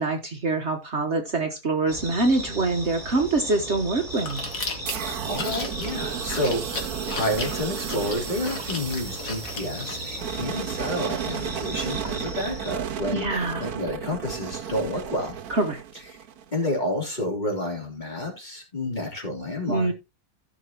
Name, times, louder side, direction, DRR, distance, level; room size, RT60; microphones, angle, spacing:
voice 1, 0.0-4.4 13.1-13.7 15.5-15.8 19.7-19.9, right 3 dB, 50° right, 1.4 m, -25 dB
sound 1, 1.9-12.7, right 2 dB, 30° right, 3.9 m, -37 dB
Chewing mastication, 4.1-10.0, left 3 dB, 60° left, 2.4 m, -36 dB
sound 2, 4.9-16.6, right 9 dB, 75° right, 1.2 m, -34 dB
voice 2, 5.0-15.3 16.1-16.2 16.5-19.9, left 1 dB, 30° left, 3.6 m, -30 dB
15.5 x 6.0 x 3.0 m
omnidirectional pair, 1.6 m